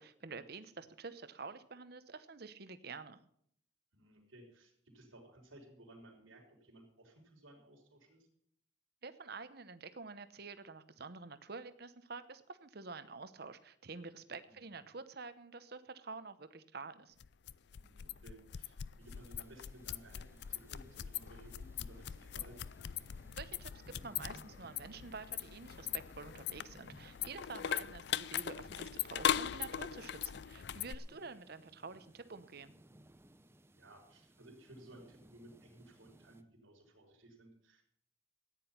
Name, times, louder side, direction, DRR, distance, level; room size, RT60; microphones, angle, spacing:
voice 1, 0.0-3.2 9.0-17.1 23.4-23.7 24.0-32.7, right 4 dB, 55° right, 12 dB, 0.9 m, -48 dB
voice 2, 3.9-8.3 14.5-14.8 17.8-22.7 33.4-37.8, right 1 dB, 90° right, 0 dB, 4.1 m, -58 dB
sound 1, 17.2-31.0, left 9 dB, 55° left, 0.4 m, -40 dB
sound 2, 19.0-36.4, right 1 dB, 10° right, 0.6 m, -63 dB
14.0 x 9.9 x 5.8 m, 0.66 s
head